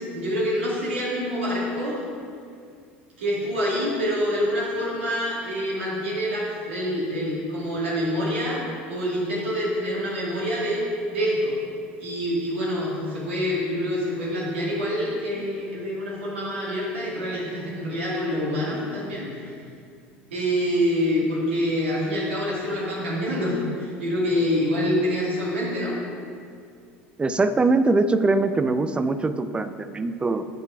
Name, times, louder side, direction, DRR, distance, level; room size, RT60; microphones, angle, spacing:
voice 1, 0.0-2.0 3.2-8.6 8.9-10.8 11.1-11.5 12.0-19.6 20.3-26.0, equal, 75° right, -6 dB, 2.0 m, -26 dB
voice 2, 27.2-30.4, right 3 dB, 15° right, 11 dB, 0.4 m, -22 dB
9.3 x 4.6 x 4.8 m, 2.3 s
figure-of-eight pair, 70°, 6 cm